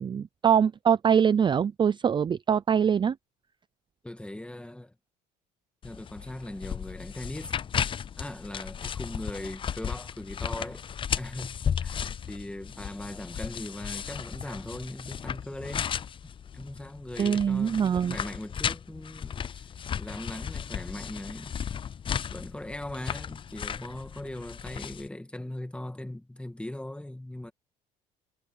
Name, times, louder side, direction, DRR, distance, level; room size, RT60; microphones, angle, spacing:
voice 1, 0.0-3.2 17.2-18.2, right 7 dB, 30° right, 0.4 m, -23 dB
voice 2, 4.0-4.9 5.8-7.6 8.2-10.9 11.2-15.9 16.2-19.7 20.0-21.7 22.3-27.5, left 1 dB, 5° left, 2.1 m, -40 dB
sound 1, 5.8-25.1, left 8 dB, 30° left, 0.4 m, -35 dB
cardioid pair, 110°, 17 cm